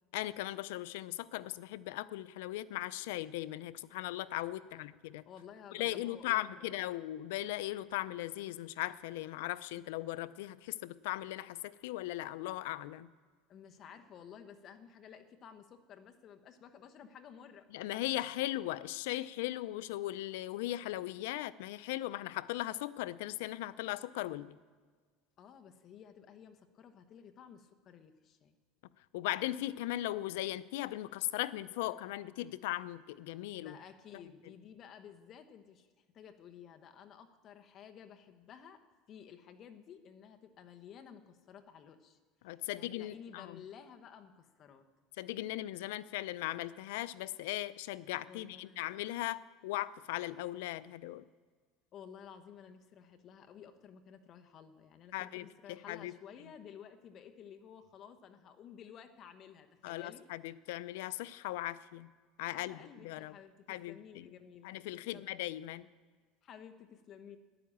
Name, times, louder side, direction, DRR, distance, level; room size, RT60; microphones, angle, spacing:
voice 1, 0.1-5.2 5.7-13.1 17.7-24.6 29.1-33.8 42.4-43.6 45.2-51.2 55.1-56.1 59.8-62.1 62.4-63.3 63.7-64.3 64.6-65.9, left 16 dB, 85° left, 17 dB, 0.5 m, -38 dB
voice 2, 5.3-6.8 13.5-17.7 25.4-28.6 33.6-42.2 42.5-44.8 48.2-48.8 51.9-60.3 62.5-64.7 65.0-65.4 66.4-67.4, left 8 dB, 40° left, 7 dB, 1.1 m, -53 dB
12.0 x 10.5 x 8.6 m, 1.5 s
cardioid pair, 145°, 0 cm